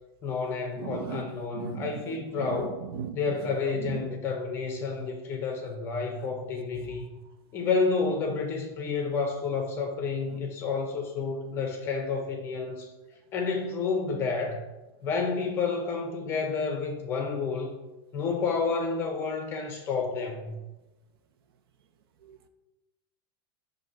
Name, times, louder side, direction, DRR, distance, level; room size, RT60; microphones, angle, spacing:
voice 1, 0.2-2.8 3.1-7.0 7.5-12.9 13.3-14.6 15.0-17.8 18.1-20.6, left 4 dB, 20° left, 0.8 m, -30 dB
voice 2, 0.8-1.3 1.5-2.1 2.4-3.2 3.7-4.1 22.2-22.5, right 8 dB, 75° right, 0.6 m, -37 dB
6.2 x 2.8 x 5.5 m
supercardioid pair, 175°, 12 cm